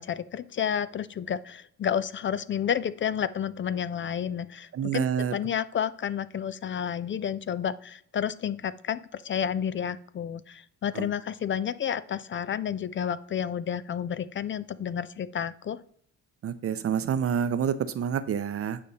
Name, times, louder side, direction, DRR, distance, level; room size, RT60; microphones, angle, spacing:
voice 1, 0.0-15.8, left 8 dB, 40° left, 16 dB, 0.4 m, -31 dB
voice 2, 4.7-5.3 10.9-11.1 16.4-18.8, right 8 dB, 50° right, 13 dB, 0.6 m, -28 dB
8.6 x 5.0 x 4.1 m, 0.65 s
cardioid pair, 90°, 30 cm